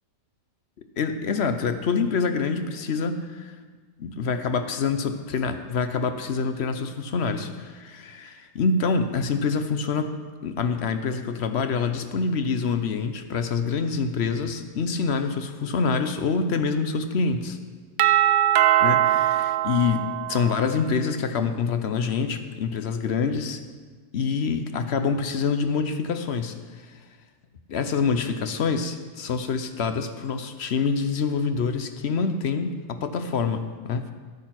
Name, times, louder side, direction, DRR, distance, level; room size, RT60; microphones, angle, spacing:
voice 1, 1.0-3.5 4.0-10.1 10.4-17.6 18.8-20.0 20.3-23.6 24.1-27.0 27.7-34.1, left 5 dB, 55° left, 8 dB, 0.8 m, -26 dB
Doorbell, 18.0-20.8, right 12 dB, 65° right, 0.9 m, -21 dB
13.0 x 8.6 x 6.0 m, 1.5 s
omnidirectional pair, 1.8 m